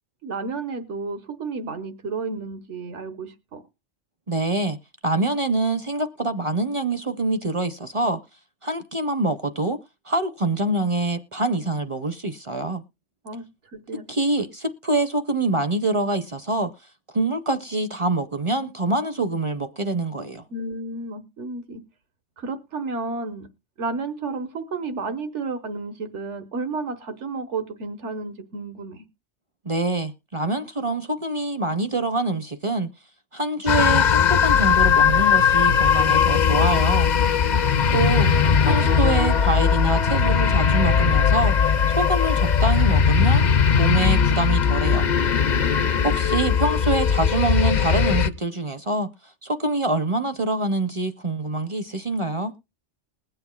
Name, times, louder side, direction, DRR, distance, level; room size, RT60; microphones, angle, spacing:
voice 1, 0.2-3.6 13.2-13.4 13.7-14.0 20.5-21.8 22.4-23.5 23.8-29.0 37.5-38.2 44.0-44.9 45.6-46.0, right 3 dB, 85° right, 1.5 m, -32 dB
voice 2, 4.3-4.8 5.0-8.2 8.6-9.8 10.1-12.8 14.1-16.7 17.1-20.4 29.6-32.9 33.3-37.1 37.9-38.3 38.6-41.6 41.9-45.1 46.0-49.1 49.4-52.5, right 2 dB, 35° right, 0.5 m, -25 dB
sound 1, 33.7-48.3, left 7 dB, 50° left, 0.6 m, -19 dB
20.5 x 7.8 x 2.3 m
omnidirectional pair, 1.2 m